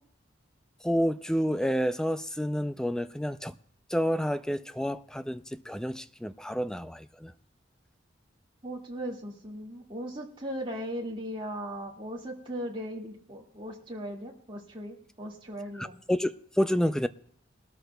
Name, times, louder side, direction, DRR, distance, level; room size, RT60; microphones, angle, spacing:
voice 1, 0.8-3.5 3.9-7.3 15.7-17.1, equal, 5° left, 0.4 m, -29 dB
voice 2, 8.6-15.9, equal, 25° right, 2.0 m, -38 dB
21.5 x 13.0 x 2.3 m
head